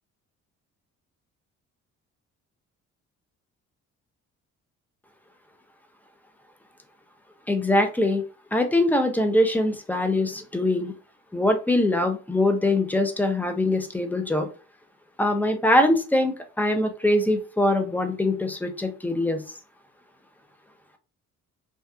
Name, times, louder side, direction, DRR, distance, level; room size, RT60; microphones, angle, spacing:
voice 1, 7.5-8.2 8.5-10.9 11.3-14.5 15.2-19.4, left 1 dB, 5° left, 6 dB, 0.4 m, -23 dB
2.7 x 2.2 x 2.2 m, 0.34 s
cardioid pair, 90°, 30 cm